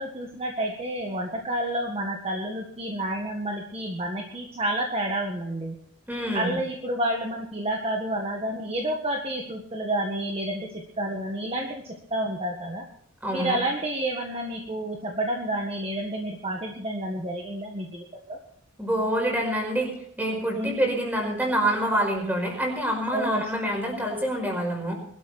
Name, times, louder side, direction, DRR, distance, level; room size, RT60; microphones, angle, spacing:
voice 1, 0.0-5.8 6.3-12.8 13.3-18.4 20.5-20.7 23.1-23.4, right 1 dB, 30° right, 1 dB, 1.7 m, -30 dB
voice 2, 6.1-6.6 13.2-13.6 18.8-19.9 20.2-24.9, right 1 dB, 10° right, 1 dB, 5.4 m, -26 dB
21.5 x 12.5 x 4.3 m, 0.67 s
head